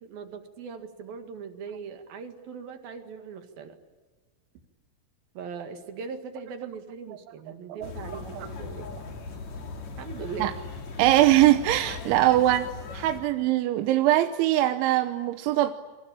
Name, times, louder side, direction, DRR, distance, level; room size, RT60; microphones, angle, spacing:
voice 1, 0.0-3.8 5.4-8.9 10.0-10.6, right 6 dB, 60° right, 7 dB, 3.5 m, -40 dB
sound 1, 7.8-13.2, left 4 dB, 40° left, 3.6 m, -39 dB
voice 2, 11.0-12.7 12.9-15.7, right 14 dB, 85° right, 8 dB, 3.4 m, -22 dB
27.5 x 24.0 x 8.8 m, 1.3 s
omnidirectional pair, 5.3 m